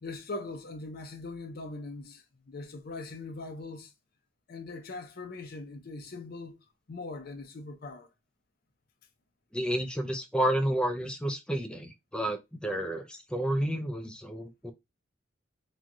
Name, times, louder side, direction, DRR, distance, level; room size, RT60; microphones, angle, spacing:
voice 1, 0.0-3.9 4.5-6.6 6.9-8.1, left 3 dB, 55° left, 0.6 m, -41 dB
voice 2, 9.5-14.7, right 1 dB, 5° left, 0.4 m, -30 dB
3.0 x 2.3 x 2.5 m
head